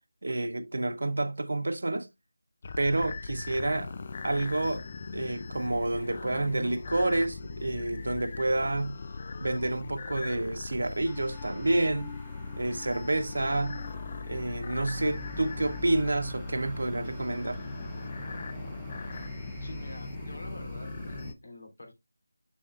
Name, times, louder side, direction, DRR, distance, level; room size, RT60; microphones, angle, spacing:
voice 1, 0.2-2.1 2.8-3.9 4.2-4.8 5.1-9.0 9.4-12.1 12.6-13.8 14.3-17.6, right 2 dB, 65° right, 0.9 m, -29 dB
sound 1, 2.6-21.3, left 4 dB, 35° left, 0.5 m, -39 dB
sound 2, 11.0-20.3, left 3 dB, 10° left, 1.5 m, -49 dB
sound 3, 14.9-21.3, right 7 dB, 15° right, 0.5 m, -47 dB
voice 2, 19.6-21.9, left 1 dB, 70° left, 3.3 m, -47 dB
7.1 x 6.9 x 2.3 m
figure-of-eight pair, 170°, 0 cm